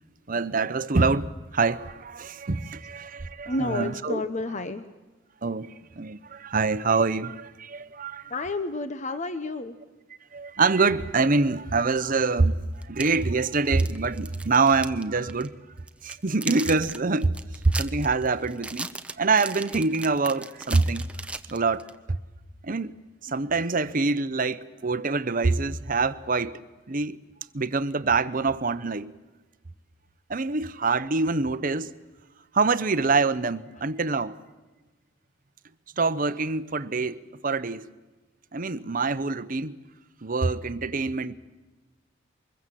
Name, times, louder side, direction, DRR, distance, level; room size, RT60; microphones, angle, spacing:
voice 1, 0.3-4.2 5.4-8.3 10.3-12.6 12.9-15.5 16.0-17.4 17.6-18.9 19.2-21.1 21.5-22.2 22.6-22.9 23.2-26.6 26.9-27.2 27.5-29.1 30.3-31.9 32.5-34.4 36.0-37.9 38.5-39.8 40.2-41.3, right 4 dB, 45° right, 0.8 m, -25 dB
voice 2, 3.5-4.9 8.3-9.8, left 2 dB, 35° left, 1.0 m, -30 dB
sound 1, 12.8-15.0 15.3-15.5 15.9-22.0, right 2 dB, 5° right, 0.8 m, -37 dB
24.5 x 22.0 x 7.6 m
head